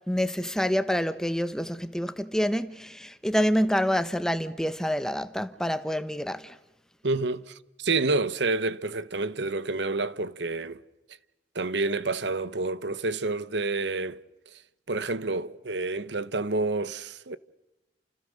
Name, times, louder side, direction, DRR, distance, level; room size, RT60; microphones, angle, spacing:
voice 1, 0.1-6.6, equal, 5° left, 1.1 m, -27 dB
voice 2, 7.0-10.8 11.5-14.2 14.5-14.6 14.9-17.4, right 3 dB, 80° right, 1.1 m, -29 dB
29.5 x 29.0 x 6.6 m
head